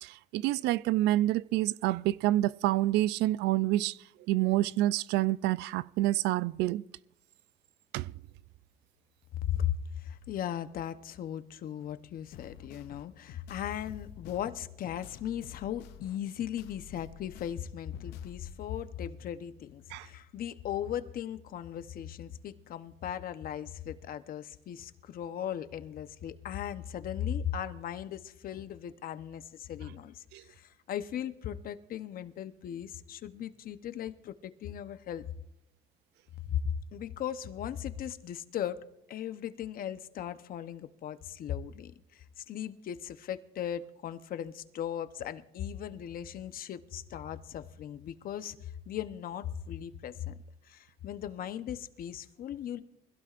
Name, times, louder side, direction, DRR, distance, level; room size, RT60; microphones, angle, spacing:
voice 1, 0.0-4.0 4.3-6.8 7.9-8.1 19.9-20.1 30.3-30.4, right 15 dB, 90° right, 0.4 m, -28 dB
voice 2, 9.4-35.3 36.4-38.8 39.1-50.3 50.6-52.8, left 10 dB, 60° left, 0.9 m, -38 dB
sound 1, 12.3-18.5, left 10 dB, 90° left, 0.7 m, -50 dB
24.5 x 16.5 x 2.5 m
cardioid pair, 110°, 17 cm